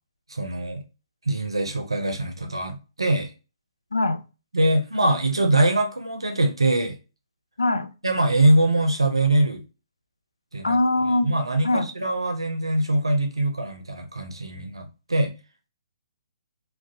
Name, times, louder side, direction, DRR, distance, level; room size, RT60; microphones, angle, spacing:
voice 1, 0.3-0.8 1.3-3.3 4.5-7.0 8.0-9.6 10.5-10.8 11.2-15.3, right 1 dB, 85° right, 0.4 m, -23 dB
voice 2, 3.9-4.2 7.6-7.9 10.6-11.3 11.6-11.9, left 2 dB, 85° left, 0.4 m, -22 dB
2.4 x 2.0 x 2.6 m
figure-of-eight pair, 130°, 3 cm